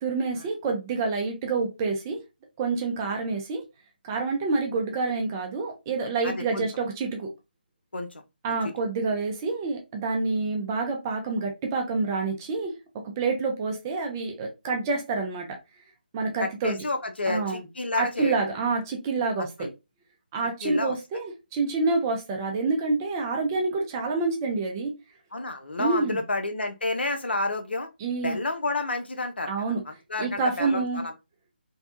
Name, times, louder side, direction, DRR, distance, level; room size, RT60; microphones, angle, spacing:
voice 1, 0.0-2.2 2.6-3.6 4.1-7.3 8.4-12.7 13.2-15.5 16.1-16.8 17.3-17.7 18.0-19.5 20.3-24.9 25.8-26.2 28.0-28.4 29.5-29.8 30.2-31.0, right 3 dB, 20° right, 0.4 m, -27 dB
voice 2, 6.2-6.7 7.9-8.2 8.6-8.7 16.4-18.4 19.6-19.7 20.6-21.0 25.3-27.9 28.2-29.5 29.9-31.1, left 2 dB, 80° left, 0.6 m, -30 dB
2.7 x 2.1 x 2.4 m
figure-of-eight pair, 155°, 6 cm